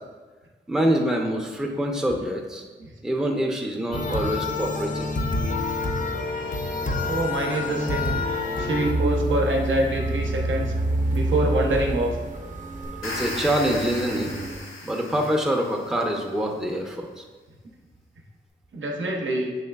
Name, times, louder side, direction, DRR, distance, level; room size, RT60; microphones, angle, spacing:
voice 1, 0.7-2.6 3.0-5.1 13.0-14.3 14.8-17.2, equal, 5° right, 1 dB, 0.6 m, -25 dB
sound 1, 3.9-8.9, left 3 dB, 40° left, 0.6 m, -27 dB
voice 2, 7.1-8.1 8.6-10.7 11.1-12.2 18.7-19.5, right 1 dB, 70° right, 0 dB, 0.7 m, -25 dB
sound 2, 8.8-14.6, right 1 dB, 40° right, 0.8 m, -28 dB
sound 3, 12.8-16.0, left 1 dB, 80° left, 0.7 m, -36 dB
6.4 x 3.1 x 2.3 m, 1.3 s
cardioid pair, 55°, 21 cm